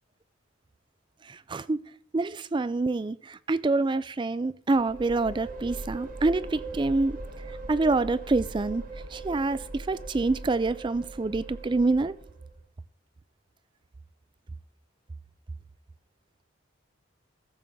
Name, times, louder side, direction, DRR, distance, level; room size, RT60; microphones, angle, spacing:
voice 1, 1.2-1.8 2.1-7.2 7.7-8.8 9.1-12.2, right 3 dB, 20° right, 0.3 m, -26 dB
sound 1, 4.7-12.6, right 2 dB, 40° right, 1.1 m, -40 dB
14.5 x 7.3 x 3.5 m
head